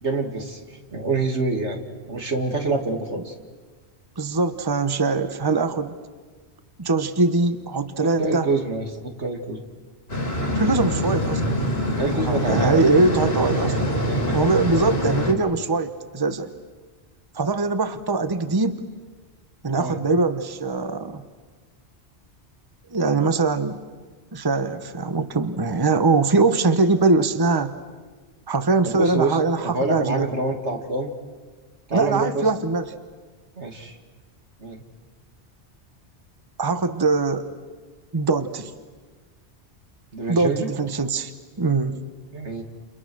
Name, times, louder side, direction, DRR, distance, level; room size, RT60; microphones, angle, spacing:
voice 1, 0.0-3.3 8.2-9.6 12.0-12.8 14.1-14.4 19.7-20.0 28.8-29.4 29.6-31.1 31.9-32.4 33.6-34.0 34.6-34.8 40.1-40.7 42.3-42.6, right 3 dB, 85° right, 4 dB, 2.8 m, -26 dB
voice 2, 4.2-5.9 6.8-8.5 10.5-11.4 12.1-13.8 14.3-16.5 17.3-18.8 19.6-21.2 22.9-23.8 24.3-27.7 28.5-30.3 31.9-32.9 36.6-37.5 38.1-38.7 40.3-41.3 41.6-42.0, right 3 dB, 20° right, 10 dB, 1.1 m, -22 dB
sound 1, 10.1-15.3, equal, 65° left, 3.3 m, -24 dB
30.0 x 30.0 x 6.3 m, 1.4 s
omnidirectional pair, 1.1 m